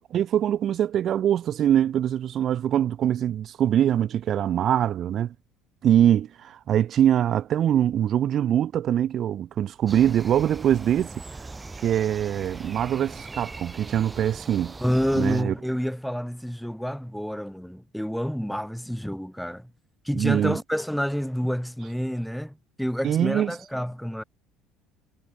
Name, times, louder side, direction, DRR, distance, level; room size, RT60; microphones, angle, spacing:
voice 1, 0.1-5.3 5.8-11.1 11.8-14.7 15.1-15.5 20.1-20.6 23.0-23.5, right 10 dB, 50° right, 1.2 m, -23 dB
sound 1, 9.9-15.4, right 3 dB, 15° right, 2.3 m, -40 dB
voice 2, 14.8-19.7 20.0-24.2, equal, ahead, 1.0 m, -28 dB
supercardioid pair, 100°, 0 cm